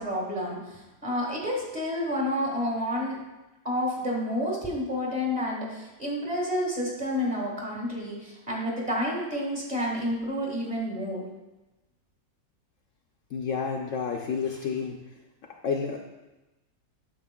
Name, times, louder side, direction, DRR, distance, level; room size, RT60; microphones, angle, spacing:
voice 1, 0.0-3.2 3.6-11.3, equal, 25° right, -3 dB, 1.8 m, -30 dB
voice 2, 13.3-15.0 15.6-16.0, left 6 dB, 65° left, 1 dB, 0.9 m, -30 dB
9.2 x 7.0 x 2.3 m, 1.0 s
omnidirectional pair, 1.6 m